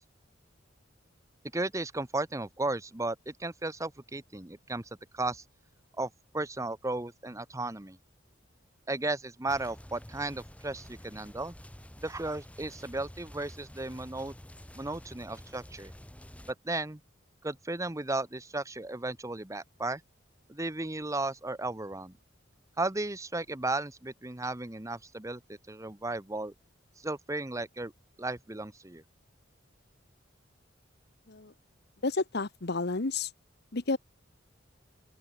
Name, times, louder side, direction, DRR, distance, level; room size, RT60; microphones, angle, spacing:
voice 1, 1.5-5.4 6.0-8.0 8.9-11.5 12.0-14.3 14.7-15.9 16.6-17.0 17.4-20.0 20.5-22.1 22.8-26.5 27.0-27.9 28.2-29.0, right 2 dB, 15° right, 1.0 m, -35 dB
sound 1, 9.5-16.5, equal, 5° left, 3.0 m, -49 dB
voice 2, 32.0-33.3 33.7-34.0, left 3 dB, 60° left, 1.1 m, -31 dB
open air
head